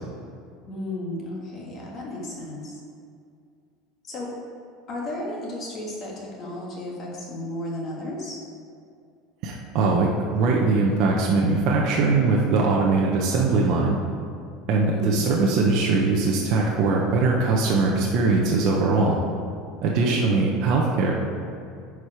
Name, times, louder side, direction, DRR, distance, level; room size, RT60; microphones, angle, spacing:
voice 1, 0.7-2.8 4.1-4.3 4.9-8.4 14.9-15.3 19.9-20.4, left 1 dB, 30° left, -3 dB, 1.7 m, -34 dB
voice 2, 9.4-14.0 14.7-19.2 19.8-21.1, right 3 dB, 45° right, -2 dB, 0.9 m, -21 dB
10.0 x 4.9 x 4.9 m, 2.3 s
cardioid pair, 175°, 0 cm